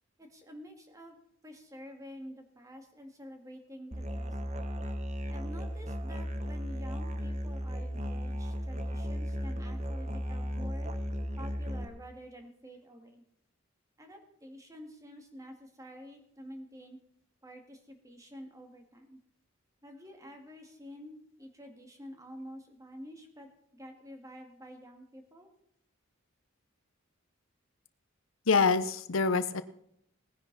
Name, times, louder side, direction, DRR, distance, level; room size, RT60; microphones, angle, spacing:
voice 1, 0.2-4.6 5.3-10.9 11.4-13.2 14.0-17.0 17.4-19.2 19.8-25.5, equal, 15° right, 3 dB, 2.1 m, -49 dB
Musical instrument, 3.9-11.8, equal, 35° right, 1.0 m, -35 dB
voice 2, 28.5-29.6, left 4 dB, 85° left, 11 dB, 0.8 m, -25 dB
19.0 x 10.0 x 4.1 m, 0.74 s
head